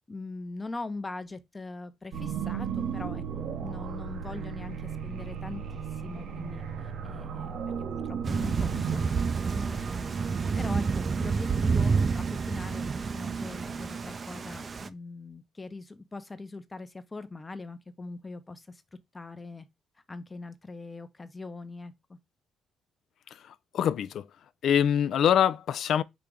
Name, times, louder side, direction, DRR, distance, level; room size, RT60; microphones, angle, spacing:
voice 1, 0.1-6.6 7.0-7.6 7.9-9.0 9.5-10.1 10.6-18.8 19.1-19.7 20.1-22.2, left 3 dB, 20° left, 0.7 m, -41 dB
sound 1, 2.1-14.0, right 7 dB, 75° right, 0.8 m, -36 dB
Thunder / Rain, 8.2-14.9, right 5 dB, 40° right, 0.4 m, -29 dB
voice 2, 23.3-24.3 24.6-26.0, left 9 dB, 70° left, 0.3 m, -25 dB
5.0 x 2.9 x 3.5 m
cardioid pair, 90°, 0 cm